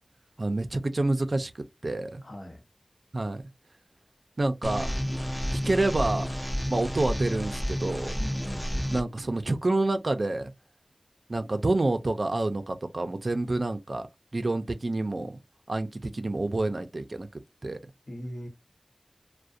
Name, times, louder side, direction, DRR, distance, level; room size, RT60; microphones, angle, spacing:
voice 1, 0.4-2.2 3.1-3.4 4.4-5.0 5.5-6.3 6.7-8.2 8.9-10.5 11.3-14.1 14.3-15.4 15.7-17.3 17.6-17.8, right 2 dB, 70° right, 0.4 m, -28 dB
voice 2, 2.2-2.6 8.2-8.9 18.1-18.5, equal, 75° left, 0.8 m, -40 dB
sound 1, 4.6-9.0, equal, 5° left, 0.4 m, -30 dB
2.4 x 2.1 x 2.6 m
wide cardioid pair, 45°, 0 cm